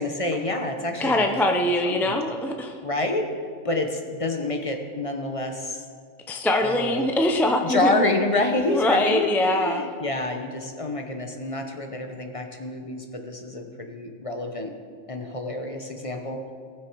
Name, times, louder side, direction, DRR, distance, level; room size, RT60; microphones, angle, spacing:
voice 1, 0.0-1.4 1.8-2.2 2.8-3.3 3.6-5.8 6.6-7.1 7.6-14.7 15.1-16.4, left 2 dB, 30° left, 4 dB, 0.9 m, -28 dB
voice 2, 1.0-2.7 6.3-8.1 8.7-9.8, left 1 dB, 5° left, 3 dB, 0.3 m, -23 dB
19.0 x 6.6 x 4.7 m, 2.1 s
omnidirectional pair, 1.4 m